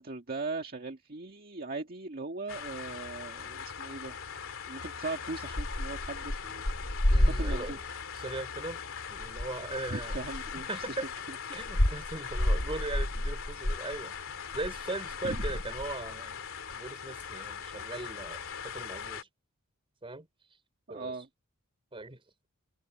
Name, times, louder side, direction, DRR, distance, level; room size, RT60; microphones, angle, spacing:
voice 1, 0.0-4.2 4.7-6.6 7.2-7.8 9.9-10.9 11.3-11.4 15.2-15.4 20.9-21.3, right 3 dB, 45° right, 1.8 m, -39 dB
sound 1, 2.5-19.2, left 2 dB, 65° left, 2.9 m, -33 dB
voice 2, 7.1-7.8 8.1-8.8 9.1-10.2 10.7-11.1 11.5-14.1 14.5-16.4 16.7-19.3 20.0-20.3 20.9-21.2 21.9-22.2, right 2 dB, 25° right, 4.5 m, -39 dB
open air
head